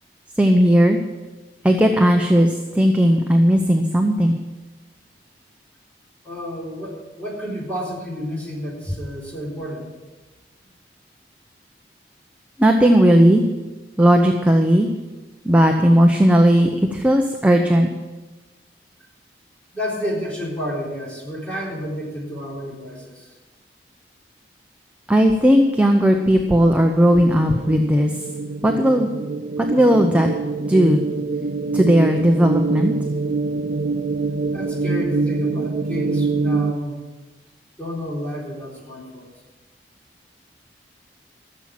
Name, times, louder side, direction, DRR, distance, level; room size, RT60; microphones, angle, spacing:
voice 1, 0.4-1.0 1.6-4.4 12.6-13.4 14.0-14.9 15.4-17.9 25.1-28.1 28.6-29.1 29.7-30.3 30.7-31.0 31.7-32.9, equal, 10° right, 3 dB, 0.7 m, -16 dB
voice 2, 6.2-9.9 19.7-23.3 34.5-37.0 37.8-39.3, equal, 10° left, -5 dB, 3.8 m, -30 dB
sound 1, 26.2-36.7, right 4 dB, 50° right, 0.4 m, -25 dB
14.5 x 7.4 x 7.4 m, 1.2 s
head